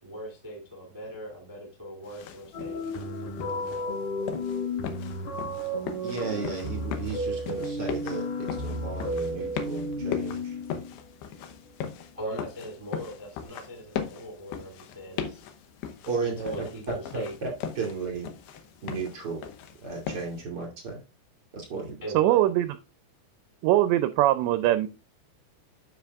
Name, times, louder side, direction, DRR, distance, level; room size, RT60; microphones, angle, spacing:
voice 1, 0.0-3.8 12.1-15.4 16.2-17.3 22.0-22.4, equal, 10° right, 1.5 m, -40 dB
sound 1, 2.0-20.4, left 8 dB, 75° left, 2.5 m, -39 dB
sound 2, 2.5-11.0, left 1 dB, 40° left, 4.0 m, -33 dB
voice 2, 6.0-10.6 16.0-16.5 16.9-18.3 18.8-19.4 19.8-21.0 21.5-22.0, right 4 dB, 35° right, 1.9 m, -34 dB
voice 3, 22.1-22.7 23.6-24.9, right 14 dB, 85° right, 2.5 m, -21 dB
11.5 x 6.3 x 2.4 m
omnidirectional pair, 5.5 m